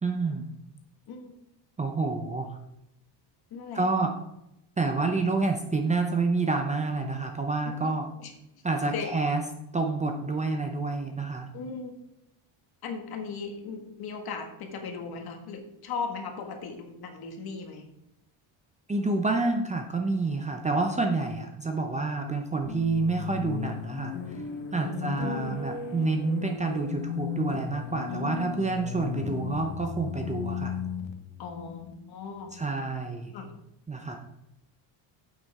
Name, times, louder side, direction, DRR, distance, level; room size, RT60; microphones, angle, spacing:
voice 1, 0.0-0.4 1.8-2.6 3.7-4.1 4.8-8.1 8.6-9.4 9.7-11.5 18.9-24.1 24.7-30.7 32.5-33.3 33.9-34.2, right 3 dB, 15° right, 4 dB, 0.6 m, -28 dB
voice 2, 3.5-3.9 7.6-8.3 8.9-9.1 11.5-11.9 12.8-17.9 24.8-25.6 28.1-28.7 31.4-32.5 33.3-33.5, left 5 dB, 50° left, 4 dB, 1.8 m, -37 dB
sound 1, 22.6-32.5, left 8 dB, 75° left, 1.3 m, -36 dB
9.6 x 8.3 x 3.6 m, 0.84 s
cardioid pair, 160°, 47 cm